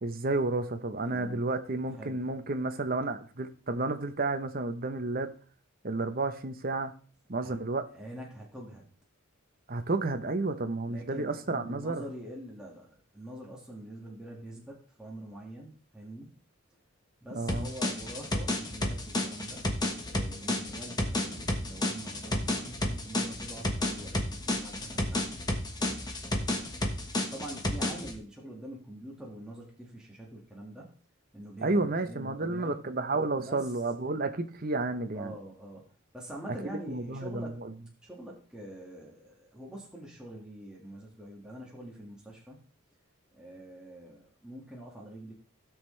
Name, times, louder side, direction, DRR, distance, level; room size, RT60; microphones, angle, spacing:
voice 1, 0.0-5.3 5.8-6.9 7.3-7.8 9.7-12.0 17.3-17.7 31.6-35.3 36.9-37.7, right 2 dB, 40° right, 8 dB, 0.9 m, -31 dB
voice 2, 1.0-1.4 1.9-2.2 7.4-7.5 7.9-8.9 10.9-16.3 17.2-19.7 20.1-26.7 27.3-30.9 31.3-32.8 33.4-33.7 34.1-34.2 35.1-35.8 36.1-37.6 38.0-42.6 43.3-45.3, right 1 dB, 5° right, -3 dB, 1.9 m, -45 dB
sound 1, 17.5-28.1, left 1 dB, 20° left, 1.2 m, -31 dB
sound 2, 19.9-26.9, equal, 25° right, 6.2 m, -51 dB
17.0 x 6.3 x 3.3 m, 0.42 s
head